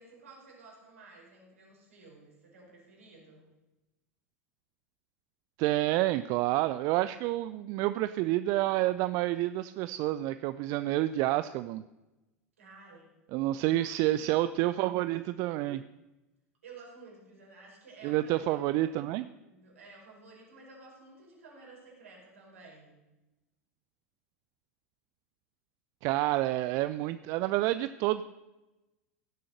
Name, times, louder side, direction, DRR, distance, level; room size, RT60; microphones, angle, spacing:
voice 1, 0.0-3.4 12.6-13.1 13.5-14.3 16.6-23.0, right 3 dB, 70° right, -2 dB, 5.1 m, -53 dB
voice 2, 5.6-11.8 13.3-15.8 18.0-19.3 26.0-28.2, right 16 dB, 45° right, 14 dB, 0.4 m, -29 dB
16.5 x 7.6 x 6.5 m, 1.0 s
figure-of-eight pair, 80°, 8 cm